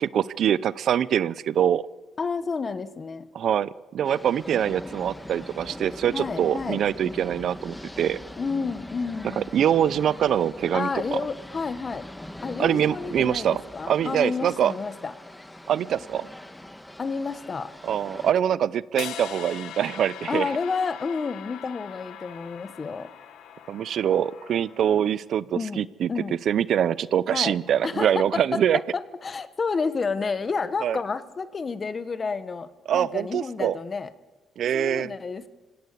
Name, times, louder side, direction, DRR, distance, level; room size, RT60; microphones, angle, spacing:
voice 1, 0.0-1.9 3.3-8.2 9.4-11.2 12.6-13.6 13.9-14.7 15.7-16.3 17.8-20.5 23.7-26.1 26.5-28.8 30.8-31.0 32.9-33.8 34.6-35.1, right 9 dB, 65° right, 19 dB, 0.7 m, -24 dB
voice 2, 2.2-3.3 6.1-6.8 8.4-9.5 10.7-12.1 12.4-15.1 17.0-17.7 20.3-23.1 25.5-25.8 26.1-26.4 27.3-34.1 34.7-35.5, left 4 dB, 35° left, 14 dB, 1.3 m, -30 dB
sound 1, 4.0-18.3, left 1 dB, 10° left, 1.7 m, -41 dB
sound 2, 19.0-25.1, left 10 dB, 85° left, 1.5 m, -41 dB
25.0 x 17.5 x 8.4 m, 1.3 s
cardioid pair, 90°, 0 cm